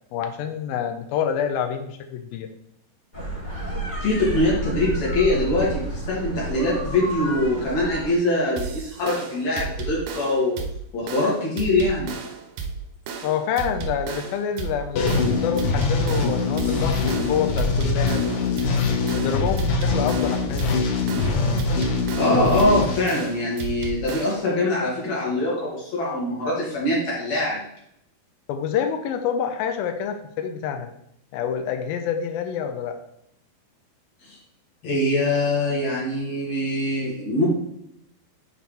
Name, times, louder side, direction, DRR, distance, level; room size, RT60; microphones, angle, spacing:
voice 1, 0.1-2.5 13.2-18.3 19.1-20.8 28.5-30.9 31.3-33.0, left 8 dB, 90° left, 6 dB, 2.5 m, -27 dB
sound 1, 3.1-8.1, right 1 dB, 15° left, 1.9 m, -30 dB
voice 2, 4.0-10.6 10.9-12.1 22.2-27.6 34.3-34.4 34.8-37.5, left 1 dB, 55° left, -5 dB, 3.2 m, -23 dB
sound 2, 8.6-24.5, right 5 dB, 75° right, 2.5 m, -34 dB
sound 3, 14.9-23.8, left 4 dB, 70° left, 3.0 m, -23 dB
9.3 x 6.0 x 3.4 m, 0.74 s
omnidirectional pair, 4.1 m